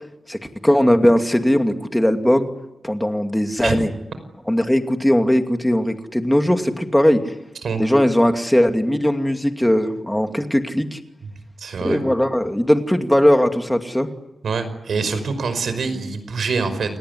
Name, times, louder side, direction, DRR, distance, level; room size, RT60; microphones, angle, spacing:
voice 1, 0.6-2.5 2.8-3.9 4.5-7.2 7.8-11.0 11.8-14.1, equal, 5° left, 5 dB, 2.5 m, -18 dB
voice 2, 11.6-12.0 14.4-17.0, right 4 dB, 85° right, 11 dB, 5.4 m, -25 dB
29.0 x 19.5 x 9.9 m, 0.96 s
wide cardioid pair, 120°, 0 cm